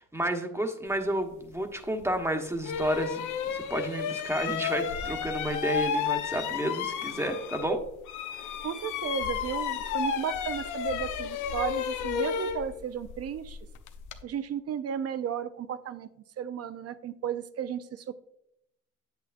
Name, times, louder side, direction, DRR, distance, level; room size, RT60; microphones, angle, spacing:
voice 1, 0.0-7.8, right 1 dB, 10° right, 4 dB, 1.1 m, -31 dB
sound 1, 2.0-2.1 2.6-7.8 8.1-14.2, left 8 dB, 85° left, 0.7 m, -32 dB
voice 2, 8.6-13.6 14.2-16.1 16.4-18.1, right 8 dB, 55° right, 12 dB, 0.6 m, -34 dB
8.3 x 8.2 x 2.5 m, 0.78 s
cardioid pair, 90°, 30 cm